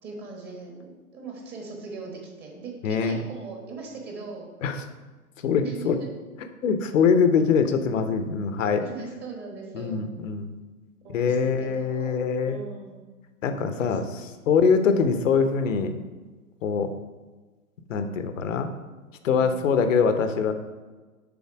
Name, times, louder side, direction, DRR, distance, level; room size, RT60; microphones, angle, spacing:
voice 1, 0.0-4.5 5.6-6.1 8.8-10.0 11.0-12.1 12.4-13.0 13.8-14.3, right 3 dB, 20° right, 0 dB, 1.4 m, -40 dB
voice 2, 2.8-3.2 4.6-4.8 5.4-6.0 6.6-8.9 9.7-10.5 11.1-12.6 13.4-14.0 14.5-15.9 16.6-16.9 17.9-18.7 19.2-20.5, left 6 dB, 60° left, 8 dB, 0.9 m, -23 dB
7.1 x 3.8 x 4.8 m, 1.3 s
figure-of-eight pair, 110°, 43 cm